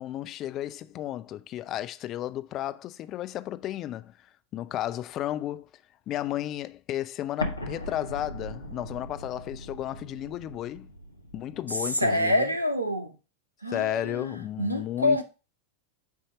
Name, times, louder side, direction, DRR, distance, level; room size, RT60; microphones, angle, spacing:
voice 1, 0.0-4.1 4.5-5.7 6.1-10.9 11.3-12.5 13.7-15.2, left 13 dB, 35° left, 0.4 m, -33 dB
Explosion, 7.4-12.2, equal, 85° left, 0.8 m, -39 dB
voice 2, 12.0-13.1 13.6-14.3 14.6-15.2, left 1 dB, 85° right, 0.8 m, -26 dB
8.2 x 2.8 x 4.8 m
figure-of-eight pair, 90°, 0 cm